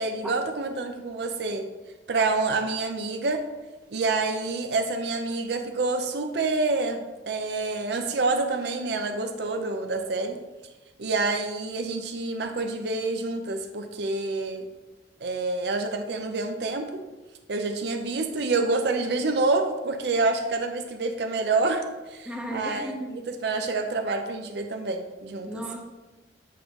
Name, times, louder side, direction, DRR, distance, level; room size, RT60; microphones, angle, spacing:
voice 1, 0.0-1.7 2.1-3.4 3.9-10.4 11.0-14.7 15.2-17.1 17.5-25.6, right 3 dB, 65° right, 5 dB, 0.5 m, -27 dB
voice 2, 22.2-23.1 25.5-25.8, equal, 5° right, -1 dB, 0.9 m, -34 dB
8.3 x 5.1 x 3.0 m, 1.2 s
head